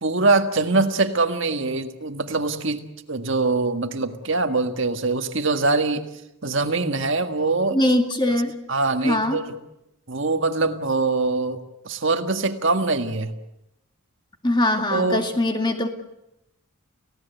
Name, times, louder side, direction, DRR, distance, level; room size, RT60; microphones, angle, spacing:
voice 1, 0.0-6.1 6.4-7.8 8.7-9.4 10.1-13.3 14.9-15.2, right 3 dB, 55° right, 6 dB, 1.7 m, -23 dB
voice 2, 7.7-8.5 9.0-9.4 14.4-15.9, left 1 dB, 20° left, 4 dB, 2.2 m, -21 dB
30.0 x 17.0 x 8.1 m, 0.86 s
head